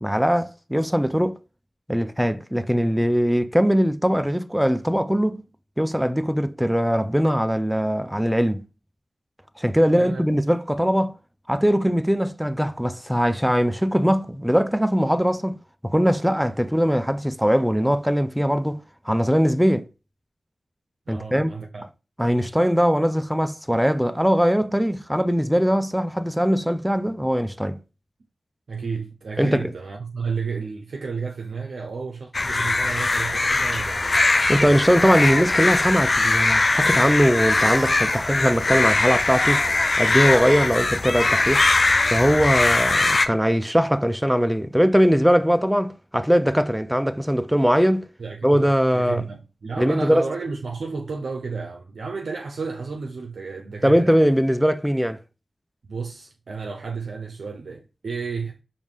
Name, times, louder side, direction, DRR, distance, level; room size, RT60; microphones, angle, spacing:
voice 1, 0.0-1.4 1.9-5.4 5.8-8.7 9.6-11.2 11.5-15.6 15.8-19.9 21.1-21.5 22.2-27.8 29.4-29.7 34.5-39.6 40.0-41.6 42.1-48.0 48.4-49.2 49.8-50.2 53.8-55.2, equal, 5° right, 0.4 m, -21 dB
voice 2, 9.9-10.2 21.1-21.9 28.7-34.2 48.2-54.2 55.8-58.6, right 4 dB, 85° right, 0.5 m, -32 dB
sound 1, 32.3-43.3, left 3 dB, 50° left, 0.4 m, -21 dB
Laughter, 33.2-34.6 34.9-35.9 36.3-36.4 36.6-37.0 37.4-38.8 39.2-40.8 41.0-41.7 41.9-42.2, right 1 dB, 30° right, 1.4 m, -36 dB
4.8 x 2.5 x 3.5 m
cardioid pair, 40°, 0 cm